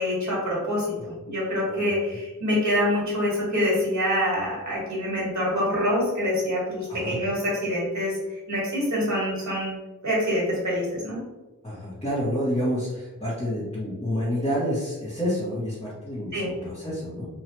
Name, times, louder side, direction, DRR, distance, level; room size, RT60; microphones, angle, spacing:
voice 1, 0.0-9.8 10.0-11.2 16.3-16.5, equal, 55° right, -5 dB, 1.4 m, -26 dB
voice 2, 1.7-2.2 6.9-7.2 11.6-17.3, equal, 20° left, -10 dB, 1.1 m, -29 dB
2.9 x 2.3 x 2.9 m, 1.1 s
wide cardioid pair, 65°, 33 cm